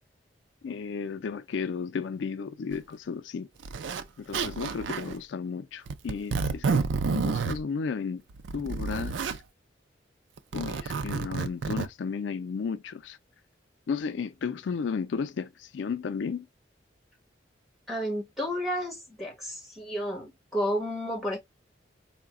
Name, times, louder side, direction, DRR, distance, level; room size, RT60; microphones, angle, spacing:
voice 1, 0.6-3.5 4.2-8.2 8.5-9.2 10.5-13.2 13.9-16.5, left 5 dB, 70° left, 0.4 m, -33 dB
Zipper (clothing), 2.7-2.8 3.6-4.0 4.3-5.2 5.9-7.6 8.3-9.4 10.4-11.9, right 5 dB, 70° right, 0.4 m, -30 dB
voice 2, 17.9-21.4, equal, ahead, 1.5 m, -31 dB
4.7 x 2.2 x 3.5 m
head